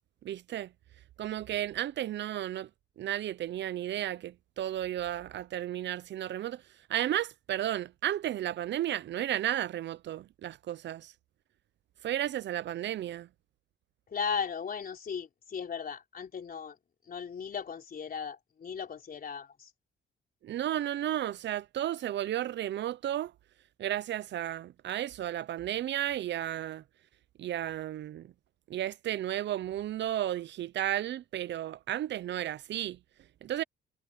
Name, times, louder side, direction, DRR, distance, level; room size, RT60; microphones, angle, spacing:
voice 1, 0.2-0.7 1.2-2.7 3.0-6.6 6.9-11.1 12.0-13.3 20.4-23.3 23.8-26.8 27.4-28.3 28.7-33.0 33.4-33.6, right 12 dB, 65° right, 0.6 m, -33 dB
voice 2, 14.1-16.8 17.1-19.7, left 6 dB, 45° left, 3.9 m, -36 dB
cardioid pair, 90°, 20 cm